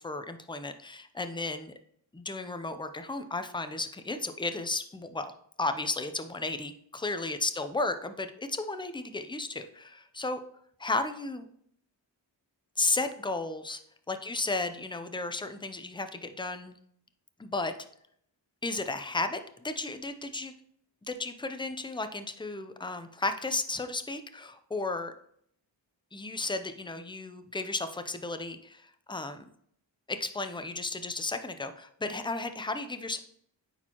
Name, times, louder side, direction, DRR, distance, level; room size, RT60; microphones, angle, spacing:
voice 1, 0.0-1.7 2.1-5.3 5.6-10.4 10.8-11.5 12.8-13.8 14.1-16.7 17.4-17.7 18.6-20.5 21.1-25.1 26.1-28.8 29.1-29.4 30.1-33.2, left 2 dB, 10° left, 9 dB, 0.5 m, -34 dB
8.8 x 4.4 x 2.9 m, 0.66 s
wide cardioid pair, 85°, 45 cm